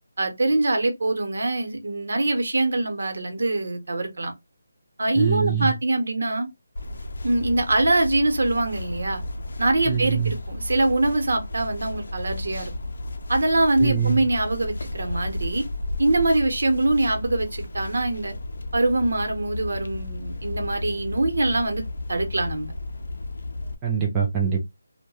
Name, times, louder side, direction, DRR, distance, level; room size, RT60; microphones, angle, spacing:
voice 1, 0.2-4.3 5.0-6.5 7.2-9.2 9.6-12.7 13.3-15.7 16.0-18.3 18.7-21.8 22.1-22.7, right 2 dB, 65° right, 0.8 m, -23 dB
voice 2, 5.1-5.7 9.9-10.3 13.8-14.2 23.8-24.7, right 7 dB, 10° right, 0.4 m, -24 dB
sound 1, 6.8-23.7, left 2 dB, 60° left, 0.5 m, -33 dB
3.0 x 2.1 x 2.2 m
hypercardioid pair, 175°, 0 cm